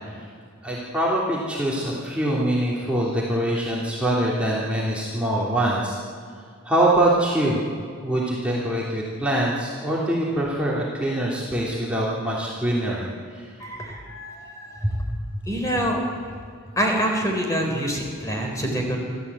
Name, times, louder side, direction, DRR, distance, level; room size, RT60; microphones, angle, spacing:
voice 1, 0.6-6.0 6.6-7.7 8.0-13.5, right 1 dB, 5° right, -6 dB, 3.1 m, -24 dB
voice 2, 13.6-15.0 15.5-16.0 16.8-19.0, equal, 15° left, 1 dB, 4.1 m, -26 dB
27.5 x 14.0 x 8.5 m, 2.3 s
head